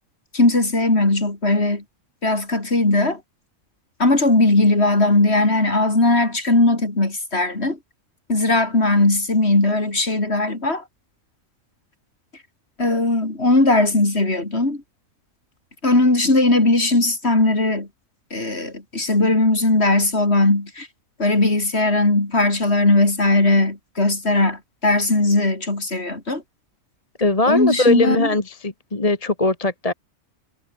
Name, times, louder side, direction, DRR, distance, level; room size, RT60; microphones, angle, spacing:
voice 1, 0.3-1.8 2.2-3.2 4.0-7.8 8.3-10.8 12.8-14.8 15.8-17.9 18.3-20.9 21.2-26.4 27.5-28.3, left 2 dB, 50° left, 4.6 m, -18 dB
voice 2, 27.2-29.9, left 2 dB, 25° left, 1.9 m, -20 dB
omnidirectional pair, 1.4 m